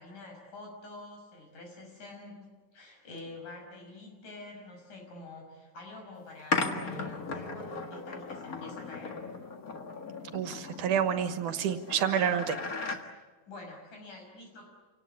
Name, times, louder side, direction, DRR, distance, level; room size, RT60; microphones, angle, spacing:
voice 1, 0.0-9.2 13.5-14.7, left 2 dB, 75° left, 2 dB, 7.4 m, -47 dB
sound 1, 6.5-13.0, left 3 dB, 35° left, 1.7 m, -36 dB
voice 2, 10.3-12.6, right 8 dB, 75° right, 9 dB, 2.9 m, -28 dB
27.5 x 18.5 x 9.8 m, 1.3 s
omnidirectional pair, 3.6 m